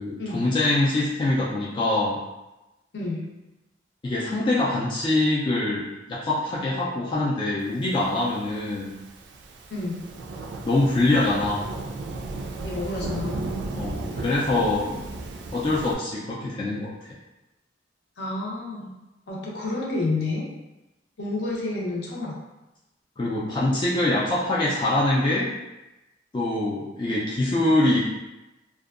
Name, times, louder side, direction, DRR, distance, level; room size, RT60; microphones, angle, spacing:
voice 1, 0.0-2.2 4.0-9.0 10.6-11.7 13.7-15.0 15.5-17.1 23.2-25.5 26.3-28.0, left 2 dB, 25° left, -7 dB, 0.3 m, -24 dB
voice 2, 2.9-3.3 9.7-10.0 12.6-13.4 18.2-18.9 19.3-20.5 21.2-22.4, left 2 dB, 65° left, -3 dB, 0.6 m, -29 dB
Thunderstorm / Rain, 8.2-15.9, right 2 dB, 70° right, 0.3 m, -35 dB
2.6 x 2.2 x 2.4 m, 1.0 s
head